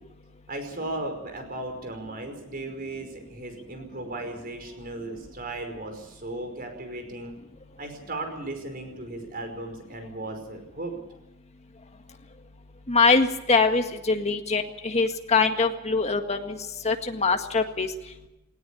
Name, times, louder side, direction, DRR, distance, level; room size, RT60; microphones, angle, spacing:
voice 1, 0.5-7.4 7.8-11.0, right 2 dB, 45° right, 5 dB, 5.2 m, -36 dB
voice 2, 12.9-16.6 16.8-17.9, left 4 dB, 30° left, 5 dB, 1.8 m, -23 dB
19.5 x 17.5 x 8.5 m, 0.93 s
head